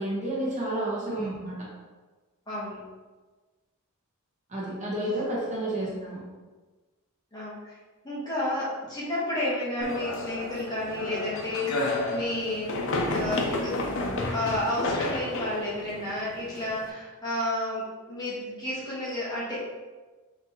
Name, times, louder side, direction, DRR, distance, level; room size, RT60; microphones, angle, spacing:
voice 1, 0.0-1.6 4.5-6.2, right 1 dB, 35° right, -6 dB, 1.1 m, -30 dB
voice 2, 2.5-2.8 5.8-6.0 7.3-7.6 8.0-12.8 13.1-13.8 14.3-19.8, left 1 dB, 20° left, -8 dB, 1.1 m, -31 dB
sound 1, 9.8-16.9, left 2 dB, 65° left, 0.5 m, -31 dB
4.1 x 3.3 x 2.9 m, 1.3 s
head